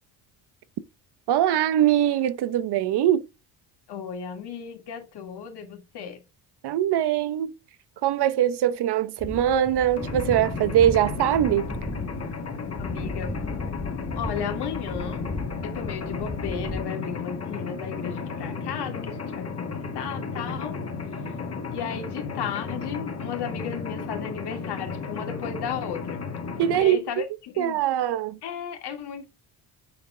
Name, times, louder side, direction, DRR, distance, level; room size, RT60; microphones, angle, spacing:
voice 1, 1.3-3.3 6.6-7.5 8.0-11.7 26.6-27.0 27.6-28.4, right 11 dB, 65° right, 0.9 m, -22 dB
voice 2, 3.9-6.2 12.8-13.4 14.2-15.3 15.6-20.8 21.7-26.2 26.8-27.8 28.4-29.2, left 7 dB, 65° left, 2.4 m, -35 dB
sound 1, 9.2-16.8, left 2 dB, 5° left, 1.0 m, -35 dB
Mechanisms, 10.0-26.8, left 4 dB, 35° left, 2.1 m, -34 dB
8.4 x 4.5 x 3.8 m
cardioid pair, 110°, 43 cm